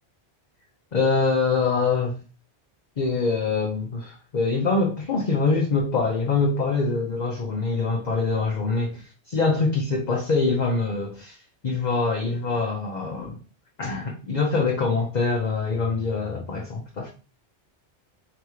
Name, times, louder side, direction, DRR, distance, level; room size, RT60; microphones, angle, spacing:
voice 1, 0.9-2.2 3.0-11.4 11.6-13.4 13.8-17.1, left 4 dB, 45° left, -1 dB, 0.8 m, -24 dB
3.8 x 3.5 x 3.1 m, 0.35 s
omnidirectional pair, 1.2 m